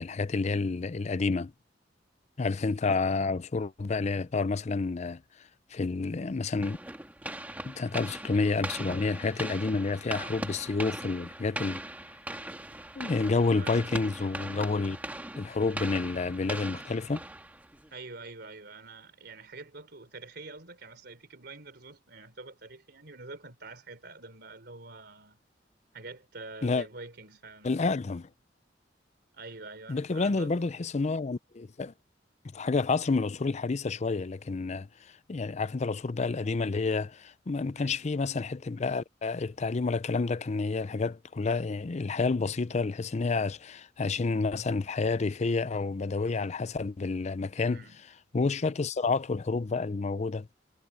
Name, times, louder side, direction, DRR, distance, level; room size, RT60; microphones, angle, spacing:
voice 1, 0.0-1.5 2.4-6.8 7.6-11.8 13.0-15.0 15.4-17.3 26.6-26.9 27.6-28.3 29.9-31.9 32.5-47.8 48.3-50.5, left 3 dB, 40° left, 0.5 m, -29 dB
sound 1, 6.6-17.9, right 1 dB, 10° right, 1.7 m, -40 dB
voice 2, 13.6-13.9 17.9-25.4 25.9-27.8 29.3-30.7 37.7-38.0 47.6-48.0, right 3 dB, 65° right, 3.8 m, -46 dB
head